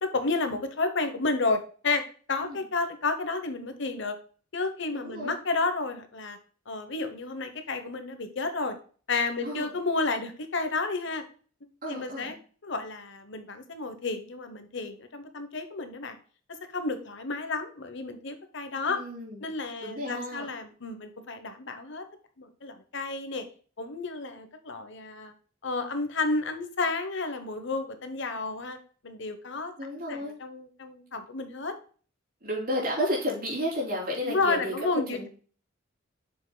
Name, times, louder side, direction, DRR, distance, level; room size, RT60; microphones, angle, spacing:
voice 1, 0.0-2.0 2.3-4.2 4.5-6.4 6.7-8.8 9.1-11.2 11.9-12.3 12.6-16.2 16.7-19.0 19.4-22.0 22.4-23.5 23.8-25.3 25.6-28.8 29.0-29.7 30.1-31.7 34.2-35.3, left 3 dB, 65° left, 8 dB, 1.1 m, -31 dB
voice 2, 4.9-5.3 9.4-9.7 11.8-12.4 18.9-19.4 19.8-20.5 29.8-30.4 32.4-34.7 35.1-35.3, equal, 45° right, -4 dB, 3.5 m, -32 dB
7.7 x 6.6 x 2.3 m, 0.41 s
head